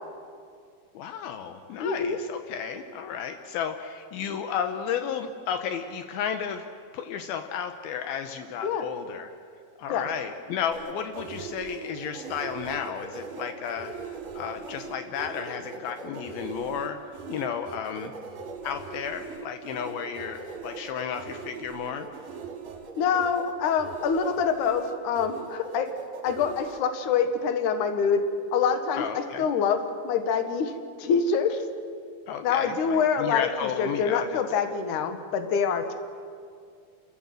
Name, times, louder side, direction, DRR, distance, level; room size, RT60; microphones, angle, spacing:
voice 1, 0.9-6.7 6.9-9.3 9.8-17.0 17.3-18.1 18.6-22.1 28.9-29.5 32.3-34.4, left 8 dB, 80° left, 7 dB, 2.7 m, -33 dB
voice 2, 1.8-2.2 8.6-8.8 9.9-10.1 23.0-25.9 26.2-28.2 28.5-30.7 31.0-31.7 32.4-35.9, left 6 dB, 65° left, 7 dB, 2.5 m, -25 dB
sound 1, 10.7-26.8, right 5 dB, 75° right, 3.7 m, -40 dB
30.0 x 14.0 x 7.6 m, 2.3 s
omnidirectional pair, 4.4 m